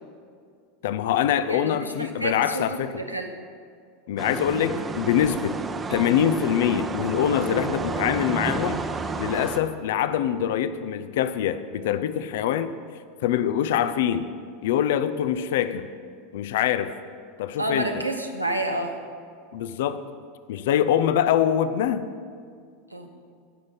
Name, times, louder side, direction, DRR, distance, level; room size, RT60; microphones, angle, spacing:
voice 1, 0.8-3.0 4.1-5.6 5.9-8.9 9.2-12.7 13.2-14.3 14.6-15.9 16.3-16.9 17.4-17.9 19.5-20.0 20.5-22.1, left 10 dB, 60° left, 13 dB, 0.5 m, -24 dB
voice 2, 1.5-3.3 17.6-19.0 22.9-23.1, right 2 dB, 90° right, 3 dB, 1.0 m, -29 dB
sound 1, 4.2-9.6, right 4 dB, 20° right, 0.8 m, -31 dB
18.5 x 6.5 x 5.5 m, 2.2 s
figure-of-eight pair, 80°, 0 cm